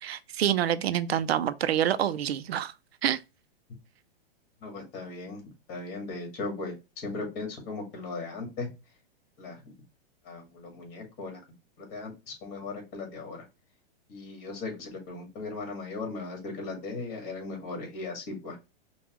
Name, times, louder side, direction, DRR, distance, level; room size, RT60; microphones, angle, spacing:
voice 1, 0.0-2.7 3.0-3.2, right 10 dB, 85° right, 0.6 m, -27 dB
voice 2, 4.6-5.4 5.7-8.7 9.4-9.6 10.3-11.4 11.9-13.5 14.1-18.6, left 3 dB, 40° left, 2.1 m, -37 dB
5.3 x 2.3 x 3.0 m
hypercardioid pair, 135°, 30 cm